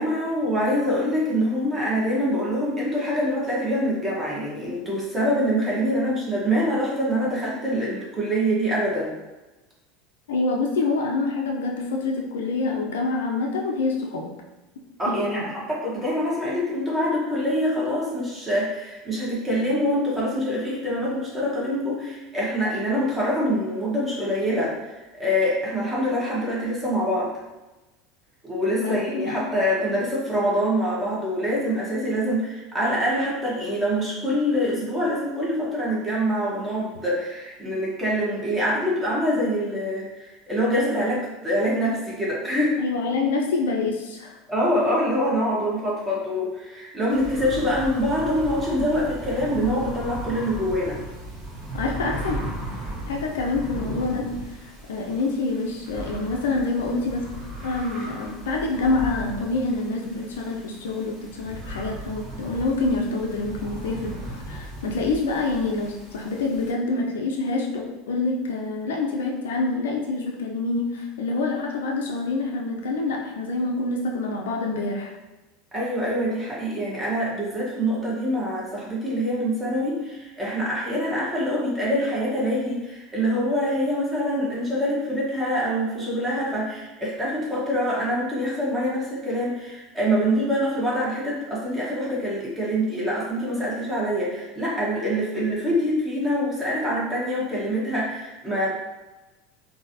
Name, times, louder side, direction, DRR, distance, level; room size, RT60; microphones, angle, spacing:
voice 1, 0.0-9.1 15.0-27.3 28.4-42.8 44.5-51.0 75.7-98.7, equal, 20° right, -6 dB, 1.2 m, -25 dB
voice 2, 10.3-14.3 15.1-15.5 28.8-29.5 42.8-44.4 51.7-52.4 53.1-54.4 54.9-57.3 57.6-75.1, left 3 dB, 70° left, 0 dB, 0.4 m, -26 dB
sound 1, 47.1-66.7, right 1 dB, 50° right, 1.3 m, -36 dB
3.7 x 2.6 x 2.7 m, 1.1 s
figure-of-eight pair, 75°, 0 cm